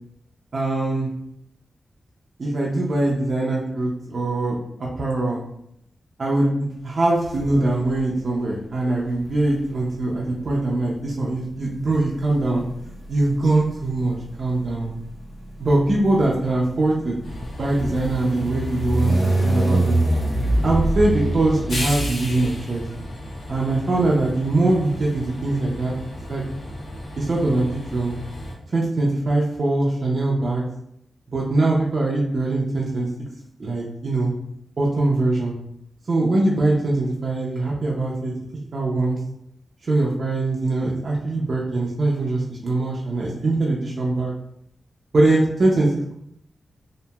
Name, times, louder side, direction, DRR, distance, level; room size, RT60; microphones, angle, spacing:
voice 1, 0.5-1.1 2.4-5.4 6.2-12.6 13.1-14.9 15.6-17.2 17.6-20.0 20.6-22.9 23.5-25.9 26.3-26.4 27.2-28.1 28.7-30.7 31.3-33.1 33.6-34.3 34.8-35.6 36.1-38.3 38.7-39.2 39.8-44.3 45.1-46.1, right 2 dB, 50° right, -4 dB, 0.4 m, -22 dB
sound 1, 7.3-8.0 9.0-22.7, right 1 dB, 35° left, 0.9 m, -26 dB
Train, 17.2-28.5, left 1 dB, 80° left, 0.6 m, -34 dB
2.8 x 2.5 x 2.2 m, 0.74 s
wide cardioid pair, 135°, 0 cm